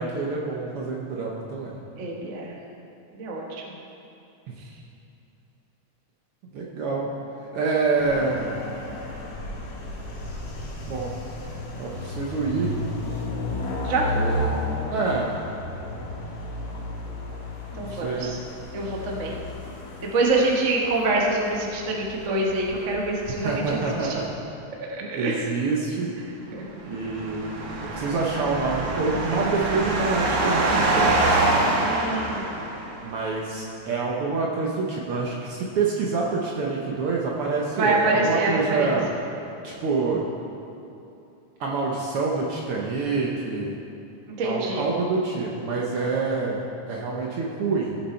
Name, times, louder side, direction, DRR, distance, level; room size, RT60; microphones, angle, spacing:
voice 1, 0.0-1.7 6.5-7.1 7.5-8.5 10.9-11.1 11.8-12.7 14.1-14.6 14.9-15.4 17.7-18.3 23.3-24.3 25.0-26.1 26.8-27.5 27.8-31.5 33.0-39.1 39.6-40.2 41.6-43.7 44.4-46.6 46.9-48.0, right 4 dB, 65° right, -3 dB, 1.5 m, -27 dB
voice 2, 2.0-2.5 3.1-3.6 13.8-14.0 17.8-18.4 18.7-19.4 20.1-24.2 24.9-25.4 26.5-26.6 31.8-32.7 37.8-39.0 44.4-44.9, right 2 dB, 45° right, -2 dB, 1.0 m, -25 dB
sound 1, 8.0-24.3, left 1 dB, 60° left, 2.5 m, -34 dB
sound 2, 26.8-33.1, right 2 dB, 80° right, 2.7 m, -24 dB
16.5 x 7.3 x 4.4 m, 2.8 s
omnidirectional pair, 3.4 m